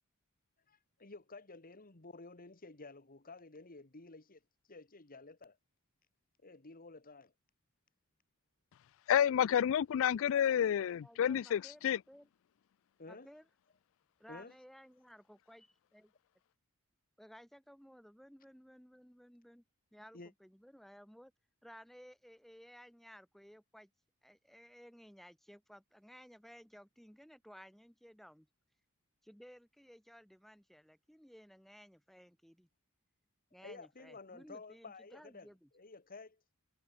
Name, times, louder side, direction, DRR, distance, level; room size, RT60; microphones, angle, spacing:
voice 1, 0.7-4.4 4.7-5.6 6.4-7.3 13.0-13.3 14.3-14.5 20.1-20.3 33.6-35.5 35.7-36.4, left 3 dB, 40° left, 2.0 m, -52 dB
voice 2, 9.1-12.0, left 9 dB, 65° left, 0.3 m, -29 dB
voice 3, 11.0-12.3 13.1-13.5 14.2-16.1 17.2-19.6 19.9-21.3 21.6-23.9 24.2-28.5 29.2-32.7 33.5-35.7, equal, ahead, 3.5 m, -57 dB
head